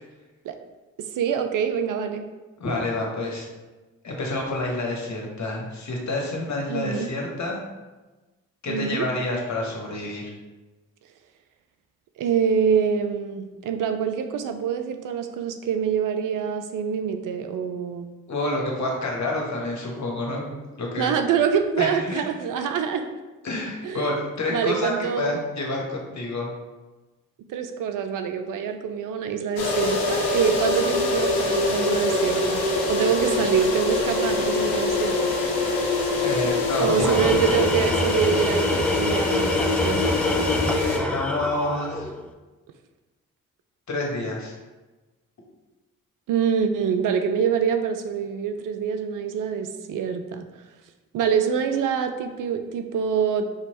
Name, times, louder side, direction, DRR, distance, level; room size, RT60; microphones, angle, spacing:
voice 1, 1.0-2.3 6.7-7.1 8.7-9.1 12.2-18.1 21.0-23.1 23.8-24.1 24.5-25.3 27.5-35.3 36.8-40.1 46.3-50.5 51.1-53.5, right 7 dB, 65° right, 7 dB, 0.5 m, -25 dB
voice 2, 2.6-3.5 4.0-7.6 8.6-10.3 18.3-20.5 20.8-21.1 21.8-22.2 23.4-26.5 36.2-37.5 40.9-42.1 43.9-44.6, left 2 dB, 50° left, -1 dB, 1.3 m, -28 dB
sound 1, 29.6-41.0, left 3 dB, 85° left, 0.8 m, -24 dB
Tools, 36.9-42.3, left 1 dB, 5° left, 0.4 m, -26 dB
4.8 x 3.0 x 2.9 m, 1.2 s
hypercardioid pair, 45°, 36 cm